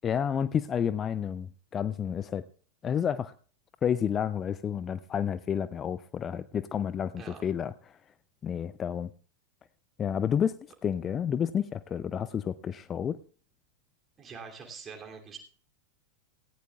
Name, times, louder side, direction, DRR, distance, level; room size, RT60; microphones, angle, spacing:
voice 1, 0.0-2.4 2.8-3.3 3.8-8.0 8.4-9.1 10.0-10.6 10.8-13.2, left 8 dB, 25° left, 16 dB, 0.5 m, -30 dB
voice 2, 14.2-15.4, right 5 dB, 20° right, 3 dB, 2.8 m, -44 dB
17.5 x 16.0 x 2.4 m, 0.43 s
figure-of-eight pair, 90°, 0 cm